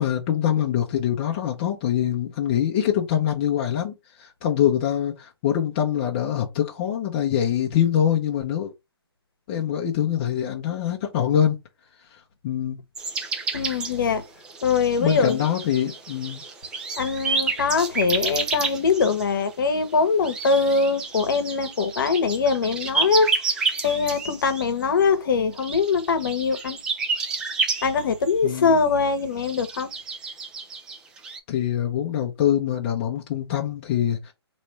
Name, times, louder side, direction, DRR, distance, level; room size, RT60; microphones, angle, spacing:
voice 1, 0.0-8.7 9.5-11.6 12.4-12.8 15.0-16.4 28.4-28.8 31.5-34.3, left 10 dB, 25° left, 0.7 m, -24 dB
sound 1, 13.0-14.0 14.4-19.4 20.2-24.7 25.0-25.1 25.5-28.3 28.6-28.7 29.4-31.4, right 4 dB, 5° right, 0.4 m, -29 dB
voice 2, 13.5-14.2 14.6-15.4 17.0-23.3 23.8-26.8 27.8-29.9, left 5 dB, 50° left, 1.0 m, -22 dB
4.2 x 3.1 x 3.2 m
figure-of-eight pair, 150°, 14 cm